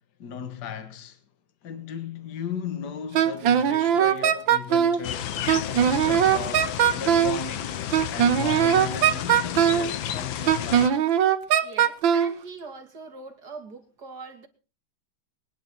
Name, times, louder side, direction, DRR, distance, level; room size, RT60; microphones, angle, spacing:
voice 1, 0.2-1.2 1.6-5.4 5.7-11.0, left 7 dB, 55° left, 2.0 m, -36 dB
Wind instrument woodwind instrument, 3.1-5.0 5.5-7.4 7.9-9.9 10.5-12.3, right 9 dB, 65° right, 1.8 m, -20 dB
sound 1, 5.0-10.9, left 10 dB, 70° left, 1.6 m, -32 dB
voice 2, 11.6-14.5, right 4 dB, 50° right, 2.7 m, -42 dB
24.5 x 10.0 x 4.5 m
omnidirectional pair, 2.3 m